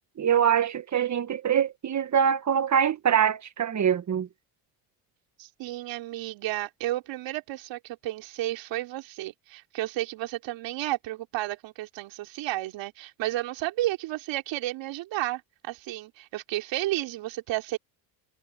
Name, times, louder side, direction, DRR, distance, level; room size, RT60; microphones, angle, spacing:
voice 1, 0.2-4.3, right 8 dB, 40° right, 1.5 m, -24 dB
voice 2, 5.4-17.8, right 16 dB, 70° right, 3.7 m, -32 dB
supercardioid pair, 85°, 46 cm